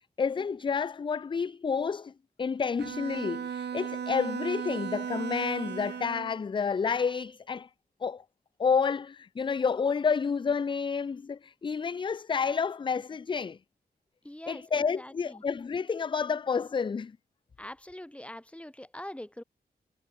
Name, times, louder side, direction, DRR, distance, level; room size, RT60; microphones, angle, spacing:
voice 1, 0.2-2.1 2.4-7.7 8.0-8.2 8.6-13.6 14.5-17.1, left 5 dB, 30° left, 0.4 m, -29 dB
Bowed string instrument, 2.8-6.4, right 8 dB, 80° right, 1.3 m, -36 dB
voice 2, 14.2-15.4 17.6-19.4, left 1 dB, 5° left, 5.5 m, -43 dB
wide cardioid pair, 160°, 17 cm